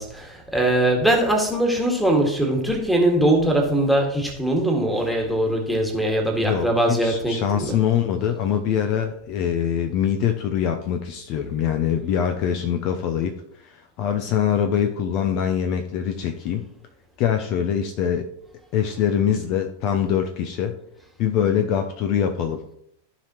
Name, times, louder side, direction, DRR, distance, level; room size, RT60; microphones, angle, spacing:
voice 1, 0.0-7.8, right 1 dB, ahead, 1.9 m, -21 dB
voice 2, 6.4-13.3 13.6-16.7 17.2-18.3 18.7-20.8 21.2-22.6, left 8 dB, 40° left, 0.7 m, -23 dB
14.5 x 5.0 x 3.0 m
figure-of-eight pair, 90°, 0 cm